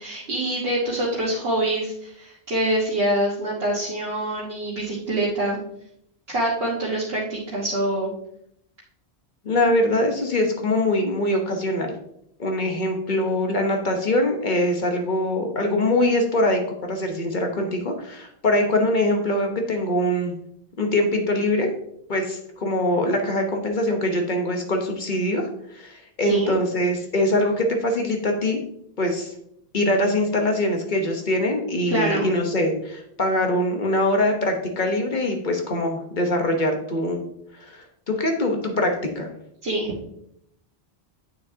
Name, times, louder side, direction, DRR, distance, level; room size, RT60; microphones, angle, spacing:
voice 1, 0.0-5.6 6.3-8.1 26.2-26.5 31.9-32.3 39.6-39.9, right 1 dB, 70° right, -6 dB, 1.6 m, -25 dB
voice 2, 9.4-11.9 12.4-20.3 20.8-21.7 22.1-25.5 25.7-28.6 29.0-29.3 29.7-37.2 37.6-39.3, left 1 dB, 50° left, 3 dB, 1.1 m, -23 dB
9.0 x 6.4 x 2.7 m, 0.73 s
omnidirectional pair, 1.1 m